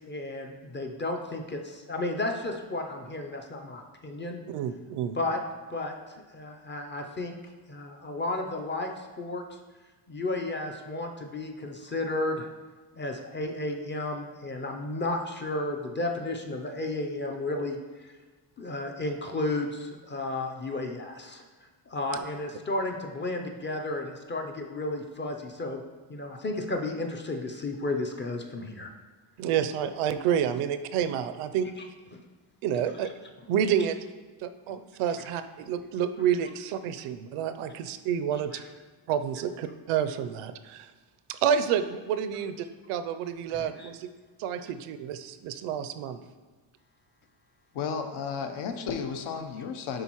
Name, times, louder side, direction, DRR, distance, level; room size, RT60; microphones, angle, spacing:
voice 1, 0.1-4.4 5.1-5.4 5.7-7.3 7.7-9.4 10.1-12.5 13.0-18.1 18.6-21.4 21.9-25.8 26.1-28.9 32.1-32.2 34.7-34.8 35.1-35.3 38.5-38.6 43.5-43.9, left 2 dB, 25° left, 3 dB, 0.4 m, -33 dB
voice 2, 4.5-5.2 22.1-22.2 29.4-31.7 32.6-33.1 33.5-34.0 34.4-38.6 39.1-40.9 41.3-44.1 44.4-46.2, right 8 dB, 90° right, 10 dB, 0.6 m, -29 dB
voice 3, 47.7-50.0, left 6 dB, 75° left, 6 dB, 0.8 m, -33 dB
10.5 x 3.9 x 3.0 m, 1.3 s
cardioid pair, 135°, 49 cm